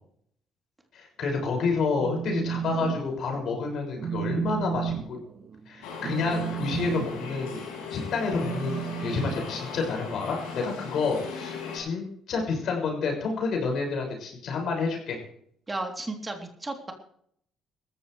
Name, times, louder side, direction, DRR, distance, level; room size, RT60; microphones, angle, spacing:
voice 1, 0.9-5.2 5.7-7.6 7.9-15.2, left 4 dB, 65° left, 1 dB, 6.3 m, -29 dB
Telephone, 2.0-3.0 3.3-3.6 4.0-10.1, right 9 dB, 55° right, 1.7 m, -33 dB
sound 1, 5.8-11.8, left 5 dB, 90° left, 8.0 m, -38 dB
voice 2, 15.7-16.9, right 2 dB, 20° right, 2 dB, 3.4 m, -34 dB
19.0 x 14.5 x 3.4 m, 0.66 s
supercardioid pair, 70°, 0 cm